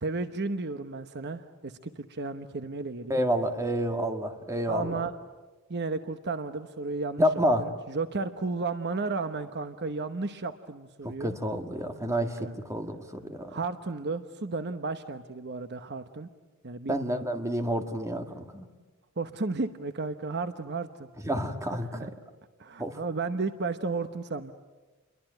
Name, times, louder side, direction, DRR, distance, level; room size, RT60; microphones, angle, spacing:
voice 1, 0.0-3.2 4.7-5.1 5.7-7.2 7.6-11.4 12.0-12.6 13.5-16.3 16.6-16.9 19.2-21.1 21.7-22.1 22.6-24.5, right 3 dB, 50° right, 10 dB, 1.0 m, -33 dB
voice 2, 3.1-5.0 7.2-7.7 11.0-13.5 16.9-18.7 21.2-22.1 22.8-23.0, equal, 15° right, 6 dB, 1.9 m, -29 dB
29.0 x 22.5 x 9.1 m, 1.2 s
head